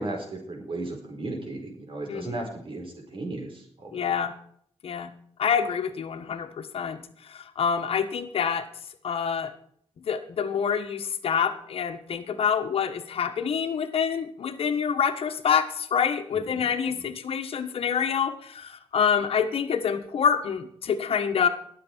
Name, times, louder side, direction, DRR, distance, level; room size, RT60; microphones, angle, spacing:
voice 1, 0.0-4.2 16.4-16.7 17.0-17.1, right 2 dB, 60° right, 2 dB, 4.5 m, -35 dB
voice 2, 2.1-2.4 3.9-4.3 4.8-5.1 5.4-7.0 7.3-8.7 9.0-9.5 10.0-21.5, left 7 dB, 70° left, 7 dB, 1.4 m, -26 dB
20.5 x 7.7 x 4.6 m, 0.65 s
cardioid pair, 90°, 10 cm